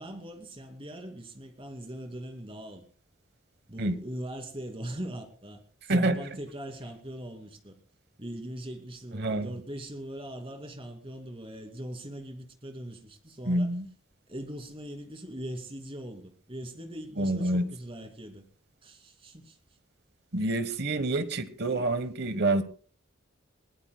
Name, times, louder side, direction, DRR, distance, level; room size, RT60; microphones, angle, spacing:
voice 1, 0.0-2.8 3.7-7.8 8.2-13.7 14.3-18.4 18.8-19.6, right 1 dB, 25° right, 2.4 m, -41 dB
voice 2, 9.1-9.6 13.5-13.9 17.2-17.7 20.3-22.6, right 2 dB, 55° right, 1.1 m, -27 dB
22.0 x 18.0 x 2.2 m
head